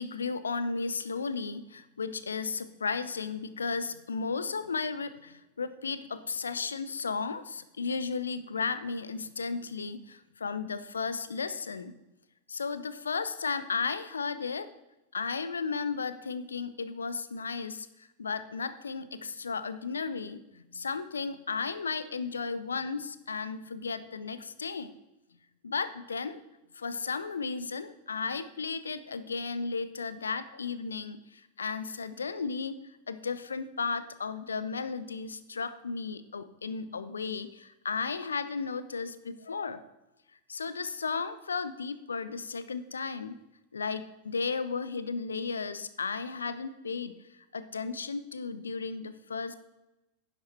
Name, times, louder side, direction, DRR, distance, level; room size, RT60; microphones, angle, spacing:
voice 1, 0.0-12.0 12.5-14.7 15.1-17.9 18.2-24.9 25.6-26.4 26.7-32.8 33.1-39.8 40.5-43.4 43.7-47.1 47.5-49.5, left 5 dB, 75° left, 13 dB, 0.6 m, -34 dB
10.5 x 7.4 x 4.4 m, 0.98 s
figure-of-eight pair, 90°, 0 cm